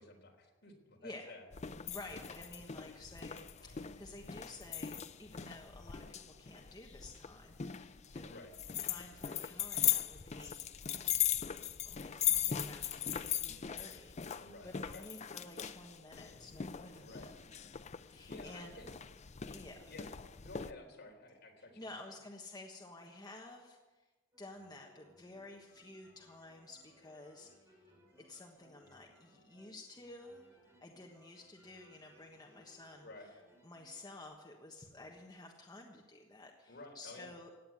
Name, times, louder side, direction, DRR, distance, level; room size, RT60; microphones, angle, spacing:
voice 1, 0.0-1.5 8.3-8.6 14.4-15.1 17.0-17.3 18.3-18.9 19.9-20.1 20.4-21.9 33.0-33.3 36.7-37.5, left 2 dB, 55° left, 1 dB, 3.8 m, -52 dB
sound 1, 1.5-20.7, left 10 dB, 35° left, 0.5 m, -39 dB
voice 2, 1.9-8.3 8.8-11.0 11.8-17.3 18.1-18.7 19.5-19.9 21.8-24.1 24.4-27.8 28.2-30.4 30.8-33.3 33.6-37.5, left 2 dB, 20° left, 0 dB, 1.4 m, -52 dB
sound 2, 24.3-34.2, equal, 15° right, 6.1 m, -66 dB
16.5 x 9.2 x 9.5 m, 1.2 s
head